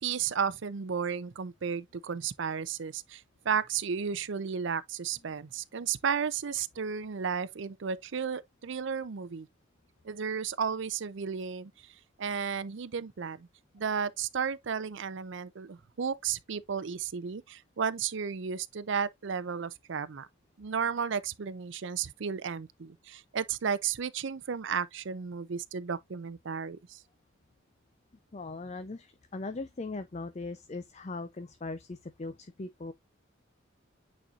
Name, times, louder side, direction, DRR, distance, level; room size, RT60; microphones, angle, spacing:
voice 1, 0.0-9.5 10.0-11.9 12.2-13.5 13.7-20.3 20.6-27.0, right 6 dB, 65° right, 0.5 m, -33 dB
voice 2, 28.3-32.9, left 3 dB, 35° left, 0.5 m, -39 dB
9.0 x 4.2 x 2.4 m
head